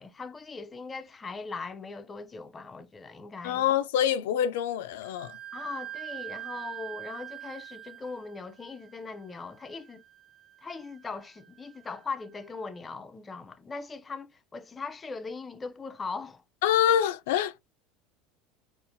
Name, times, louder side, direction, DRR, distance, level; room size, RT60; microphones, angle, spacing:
voice 1, 0.0-3.6 5.5-10.0 10.6-16.4, left 4 dB, 20° left, 0.4 m, -40 dB
voice 2, 3.4-5.4 16.6-17.6, left 10 dB, 85° left, 0.4 m, -25 dB
Wind instrument woodwind instrument, 5.0-12.5, right 13 dB, 55° right, 0.9 m, -45 dB
4.0 x 2.5 x 2.5 m
supercardioid pair, 115°, 0 cm